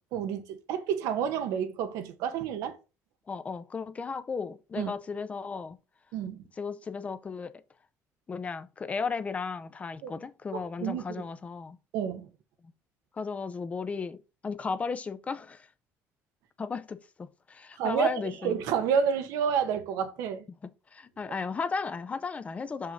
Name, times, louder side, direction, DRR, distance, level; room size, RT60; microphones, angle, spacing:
voice 1, 0.1-2.7 4.8-4.9 6.1-6.4 10.0-10.1 10.5-11.2 11.9-12.3 17.8-18.1 18.4-20.4, right 7 dB, 85° right, 1.3 m, -29 dB
voice 2, 3.3-5.8 6.6-7.5 8.3-11.8 13.2-14.2 14.4-15.7 16.6-18.6 20.9-22.9, left 5 dB, 25° left, 0.6 m, -35 dB
6.2 x 5.5 x 5.2 m
cardioid pair, 140°, 6 cm